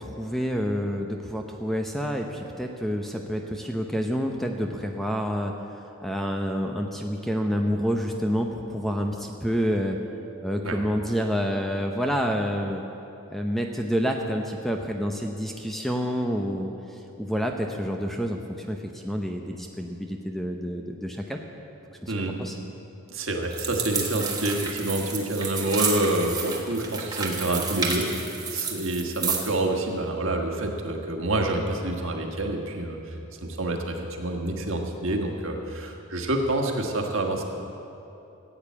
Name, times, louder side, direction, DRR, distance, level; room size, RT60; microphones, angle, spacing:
voice 1, 0.0-5.5 6.0-10.0 10.4-12.8 13.3-18.4 18.7-21.4 22.0-22.1 22.4-22.6, equal, ahead, 2 dB, 0.7 m, -28 dB
voice 2, 22.1-22.4 23.1-33.1 33.4-37.4, right 1 dB, 60° right, 2 dB, 1.6 m, -27 dB
sound 1, 23.5-29.6, right 5 dB, 15° right, 1.3 m, -31 dB
15.5 x 8.9 x 8.5 m, 2.9 s
head